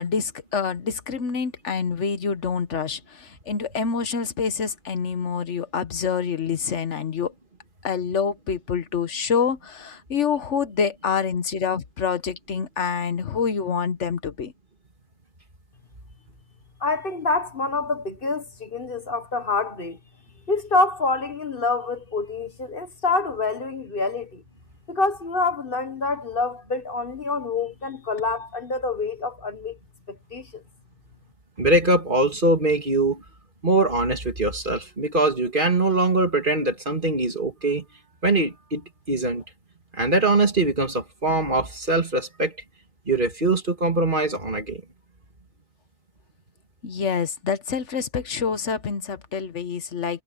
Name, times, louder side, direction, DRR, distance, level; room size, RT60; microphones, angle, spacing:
voice 1, 0.0-7.3 7.8-14.5 46.8-50.2, left 6 dB, 75° left, 1.4 m, -26 dB
voice 2, 16.8-20.0 20.5-24.4 24.9-29.8 30.1-30.6, left 3 dB, 50° left, 1.5 m, -26 dB
voice 3, 31.6-33.2 33.6-37.8 38.2-39.4 39.9-42.5 43.1-44.8, right 2 dB, 40° right, 2.8 m, -22 dB
omnidirectional pair, 1.3 m